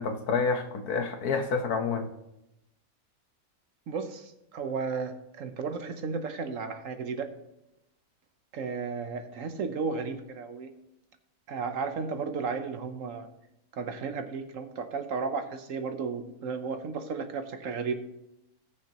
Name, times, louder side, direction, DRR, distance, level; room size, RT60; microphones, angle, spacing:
voice 1, 0.0-2.1, left 5 dB, 85° left, 6 dB, 1.6 m, -28 dB
voice 2, 3.9-7.3 8.5-10.7 11.5-13.3 13.7-17.9, right 5 dB, 65° right, 8 dB, 1.2 m, -34 dB
20.0 x 6.6 x 3.0 m, 0.88 s
omnidirectional pair, 1.6 m